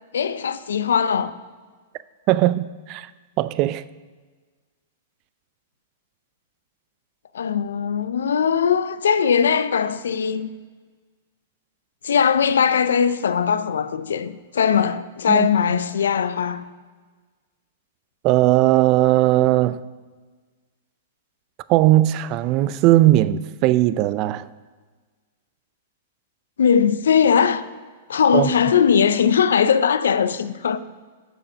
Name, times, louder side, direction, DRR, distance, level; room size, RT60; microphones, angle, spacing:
voice 1, 0.1-1.4 7.3-10.5 12.0-16.6 26.6-27.6 28.1-30.8, left 7 dB, 75° left, 0.5 m, -20 dB
voice 2, 2.3-3.1 3.4-3.8 15.3-15.5 18.2-19.8 21.7-24.5 28.3-28.5, right 15 dB, 40° right, 0.4 m, -18 dB
6.5 x 6.2 x 6.7 m
hypercardioid pair, 110°, 0 cm